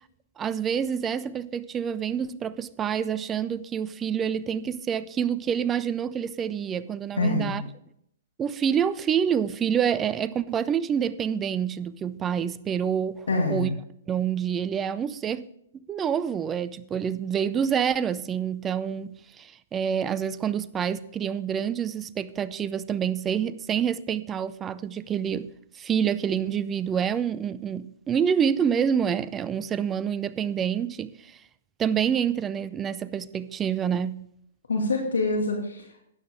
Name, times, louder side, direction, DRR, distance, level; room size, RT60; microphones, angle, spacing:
voice 1, 0.4-7.6 8.4-13.7 14.1-15.5 15.9-25.5 25.7-31.3 31.8-34.2, right 8 dB, 20° right, 0.5 m, -27 dB
voice 2, 7.2-7.5 13.3-13.7 34.7-36.0, left 2 dB, 80° left, 2.1 m, -25 dB
12.5 x 9.4 x 3.5 m
hypercardioid pair, 125°, 0 cm